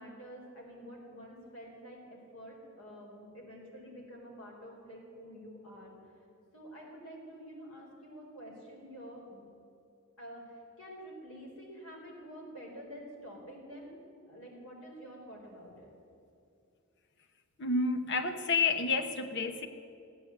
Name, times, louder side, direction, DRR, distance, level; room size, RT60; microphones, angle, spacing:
voice 1, 0.0-6.1 6.5-9.4 10.2-13.9 14.3-15.9, equal, 85° left, -2 dB, 4.4 m, -48 dB
voice 2, 17.6-19.7, left 4 dB, 55° left, 8 dB, 1.0 m, -30 dB
15.0 x 9.5 x 8.7 m, 2.6 s
head